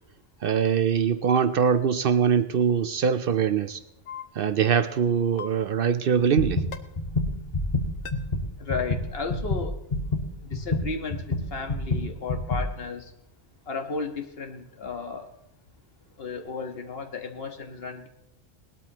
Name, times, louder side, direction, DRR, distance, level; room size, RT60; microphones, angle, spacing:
voice 1, 0.4-3.8 4.4-6.6, right 7 dB, 60° right, 12 dB, 0.7 m, -23 dB
sound 1, 4.1-4.2 5.4-5.5 6.7-6.8 8.1-8.2, left 7 dB, 85° left, 1.2 m, -36 dB
sound 2, 6.2-12.6, left 2 dB, 35° left, 1.5 m, -28 dB
voice 2, 8.6-9.7 10.4-11.2 11.5-13.0 13.7-15.2 16.2-18.1, left 4 dB, 60° left, 4 dB, 1.7 m, -34 dB
19.5 x 12.5 x 3.0 m, 0.88 s
omnidirectional pair, 1.1 m